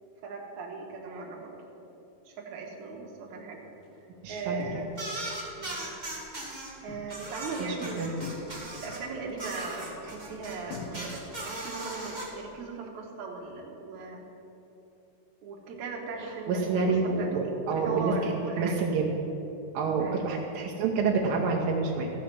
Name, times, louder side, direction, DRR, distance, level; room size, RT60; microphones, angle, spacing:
voice 1, 0.2-1.5 2.3-3.6 4.3-5.0 5.6-6.3 6.8-8.1 8.7-14.2 15.4-18.8 20.0-20.3, right 4 dB, 60° right, -1 dB, 2.6 m, -38 dB
sound 1, 3.3-5.2 5.5-6.2 6.5-12.5, left 4 dB, 80° left, 3.0 m, -46 dB
voice 2, 4.2-4.8 7.6-8.1 16.5-19.1 19.7-22.1, right 4 dB, 80° right, -1 dB, 2.6 m, -28 dB
sound 2, 4.9-6.7 7.1-9.0 9.4-12.2, right 2 dB, 20° right, 1.3 m, -38 dB
15.0 x 5.8 x 7.6 m, 3.0 s
omnidirectional pair, 4.1 m